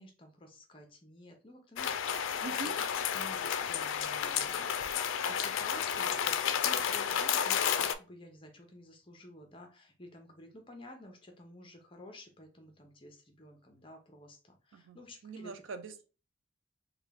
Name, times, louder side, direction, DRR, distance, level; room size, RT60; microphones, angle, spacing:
voice 1, 0.0-2.2 2.7-2.8 3.1-4.7 5.2-15.5, left 1 dB, 25° left, 4 dB, 0.7 m, -52 dB
sound 1, 1.8-7.9, left 8 dB, 90° left, 0.3 m, -31 dB
voice 2, 2.4-2.8 14.7-16.0, right 4 dB, 80° right, 9 dB, 0.5 m, -43 dB
3.5 x 2.3 x 3.3 m, 0.33 s
head